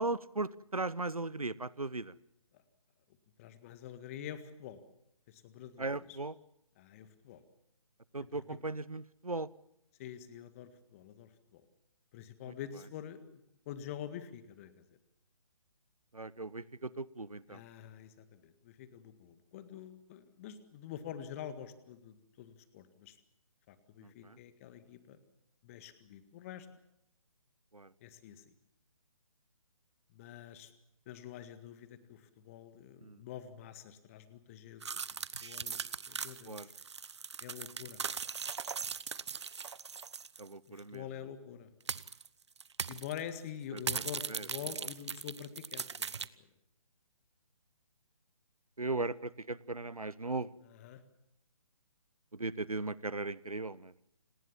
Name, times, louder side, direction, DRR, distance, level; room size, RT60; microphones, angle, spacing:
voice 1, 0.0-2.1 5.8-6.3 8.1-9.5 16.1-17.6 24.2-24.4 27.7-27.9 33.0-33.2 36.5-36.7 40.4-41.0 44.3-44.4 48.8-50.5 52.4-53.9, right 3 dB, 80° right, 20 dB, 1.0 m, -37 dB
voice 2, 3.4-4.8 5.3-6.2 6.8-7.4 8.3-8.4 10.0-11.7 12.1-15.0 17.5-23.2 23.7-25.2 25.6-26.7 28.0-28.4 30.1-30.7 31.1-34.8 35.4-36.7 37.4-38.0 40.7-41.7 42.9-46.5 48.9-49.1 50.6-51.0, left 9 dB, 25° left, 12 dB, 1.8 m, -47 dB
sound 1, 34.8-40.5 40.8-40.9 41.9-42.3 42.6-43.2 43.8-46.3, right 6 dB, 50° right, 0.9 m, -39 dB
28.5 x 19.0 x 7.3 m, 0.80 s
figure-of-eight pair, 140°, 18 cm